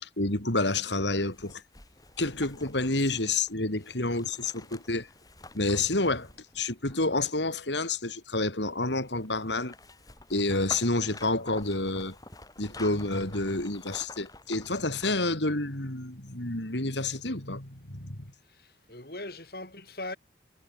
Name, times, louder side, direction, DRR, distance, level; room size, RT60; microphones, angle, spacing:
voice 1, 0.0-1.6 2.2-5.1 5.5-6.3 6.5-9.7 10.3-12.2 12.6-18.3, left 2 dB, 80° left, 4.6 m, -29 dB
sound 1, 1.2-7.4 9.0-15.3 15.7-15.8, left 3 dB, 20° left, 7.5 m, -49 dB
voice 2, 18.6-20.2, left 2 dB, 55° left, 6.1 m, -40 dB
head